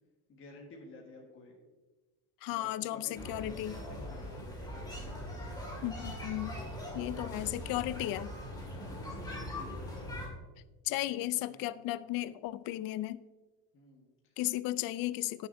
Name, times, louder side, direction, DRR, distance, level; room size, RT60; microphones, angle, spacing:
voice 1, 0.3-1.5 2.4-5.8 6.8-8.0 8.5-9.9 10.9-11.9 13.7-14.3, left 2 dB, 30° left, -1 dB, 1.4 m, -52 dB
voice 2, 2.4-3.8 5.8-6.6 6.9-8.3 10.8-13.2 14.4-15.5, left 15 dB, 60° left, 16 dB, 0.5 m, -35 dB
sound 1, 3.1-10.3, left 1 dB, 10° left, 2.1 m, -41 dB
16.0 x 6.9 x 2.6 m, 1.2 s
cardioid pair, 170°, 39 cm